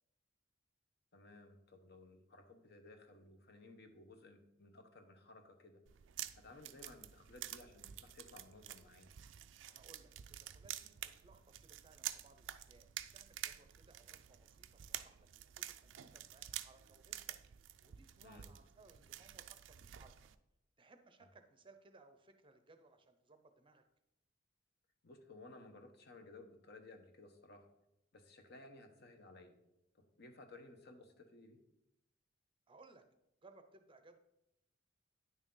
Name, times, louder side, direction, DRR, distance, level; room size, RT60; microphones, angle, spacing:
voice 1, 1.1-5.8 6.3-9.1 18.2-18.5 25.0-27.7 28.1-29.6 29.9-31.6, left 2 dB, 55° left, 5 dB, 1.0 m, -58 dB
sound 1, 5.9-20.4, right 12 dB, 65° right, 0.4 m, -49 dB
voice 2, 9.7-17.4 17.8-20.2 20.8-23.8 32.7-33.0 33.4-34.2, right 3 dB, 25° right, 8 dB, 0.6 m, -64 dB
9.5 x 6.4 x 3.8 m, 0.86 s
head